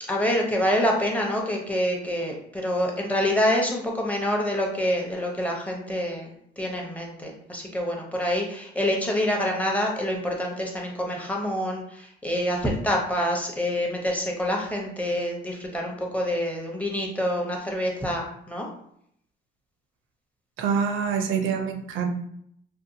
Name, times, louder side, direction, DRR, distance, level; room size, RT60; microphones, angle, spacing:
voice 1, 0.1-18.7, equal, 5° left, -1 dB, 0.7 m, -26 dB
voice 2, 20.6-22.1, right 6 dB, 85° right, 4 dB, 0.5 m, -26 dB
2.7 x 2.2 x 2.6 m, 0.70 s
cardioid pair, 90°, 20 cm